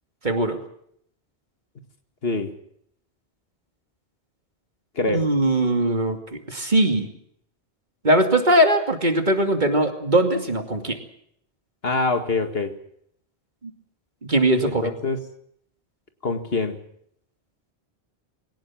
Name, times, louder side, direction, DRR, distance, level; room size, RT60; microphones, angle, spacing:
voice 1, 0.2-0.6 5.1-6.2 6.5-7.1 8.0-11.0 13.6-13.7 14.3-14.9, right 1 dB, 45° right, 5 dB, 2.6 m, -20 dB
voice 2, 2.2-2.5 5.0-5.3 11.8-12.7 14.6-15.2 16.2-16.8, left 3 dB, 70° left, 8 dB, 2.2 m, -25 dB
22.0 x 18.0 x 7.4 m, 0.69 s
omnidirectional pair, 1.1 m